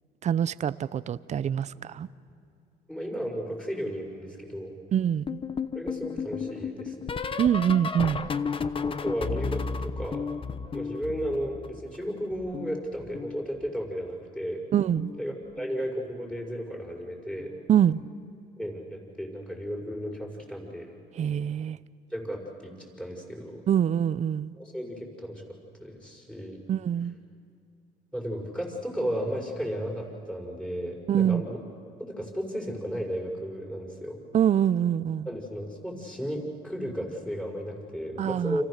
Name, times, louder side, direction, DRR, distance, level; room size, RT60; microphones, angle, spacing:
voice 1, 0.2-2.1 4.9-5.4 7.4-8.3 14.7-15.1 17.7-18.0 21.1-21.8 23.7-24.5 26.7-27.1 31.1-31.4 34.3-35.3 38.2-38.6, right 9 dB, 40° right, 16 dB, 0.6 m, -25 dB
voice 2, 2.9-4.7 5.7-7.2 8.8-10.2 10.7-14.6 15.2-17.5 18.6-20.9 22.1-23.6 24.6-25.4 25.8-26.6 28.1-31.6 32.0-34.2 35.2-38.6, equal, 5° left, -1 dB, 5.9 m, -34 dB
sound 1, 5.3-12.0 12.3-13.9 14.9-15.2 15.5-15.8 17.4-17.7 18.0-18.2 19.8-19.9, left 5 dB, 30° left, 1.0 m, -34 dB
29.5 x 28.0 x 6.6 m, 2.5 s
cardioid pair, 110°, 17 cm